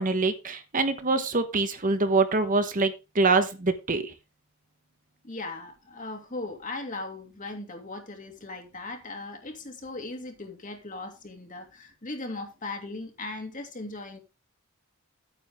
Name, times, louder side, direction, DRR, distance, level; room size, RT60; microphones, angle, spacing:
voice 1, 0.0-4.1, right 3 dB, 40° right, 1.2 m, -25 dB
voice 2, 5.2-14.2, left 2 dB, 40° left, 2.6 m, -38 dB
9.7 x 9.2 x 3.6 m
head